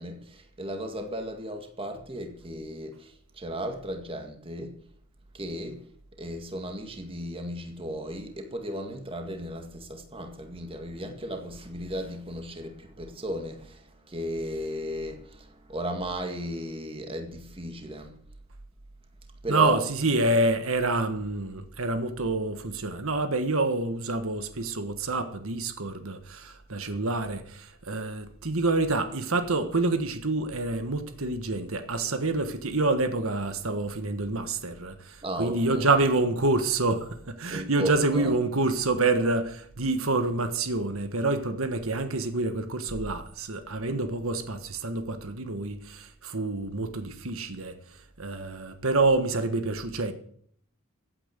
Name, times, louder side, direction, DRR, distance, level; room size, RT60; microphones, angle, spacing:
voice 1, 0.0-4.8 5.3-5.9 6.2-18.2 19.4-19.8 35.2-35.9 37.5-38.3, equal, 25° right, 2.0 m, -35 dB
voice 2, 19.5-50.1, right 2 dB, 75° right, 1.5 m, -27 dB
15.5 x 8.9 x 8.2 m
head